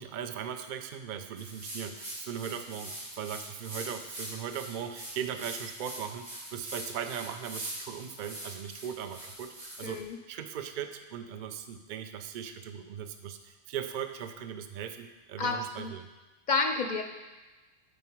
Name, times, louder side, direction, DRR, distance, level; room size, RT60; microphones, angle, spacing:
voice 1, 0.0-16.1, right 8 dB, 55° right, 8 dB, 0.6 m, -39 dB
sound 1, 1.4-10.0, right 1 dB, 85° right, 2.0 m, -43 dB
voice 2, 9.8-10.2 15.4-15.9 16.5-17.0, left 4 dB, 55° left, 6 dB, 0.5 m, -30 dB
9.3 x 4.7 x 4.5 m, 1.2 s
omnidirectional pair, 1.1 m